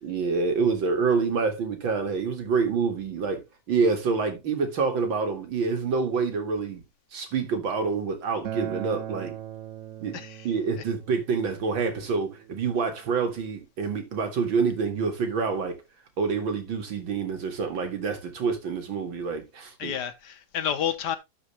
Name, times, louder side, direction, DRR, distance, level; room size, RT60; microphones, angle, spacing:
voice 1, 0.0-6.8 7.1-9.3 10.0-10.2 10.4-15.8 16.2-19.9, right 5 dB, 90° right, 2.7 m, -27 dB
Acoustic guitar, 8.4-13.6, right 10 dB, 65° right, 0.8 m, -40 dB
voice 2, 10.1-10.5 10.8-10.9 19.8-21.2, left 9 dB, 65° left, 1.5 m, -30 dB
12.0 x 4.9 x 3.2 m
omnidirectional pair, 2.1 m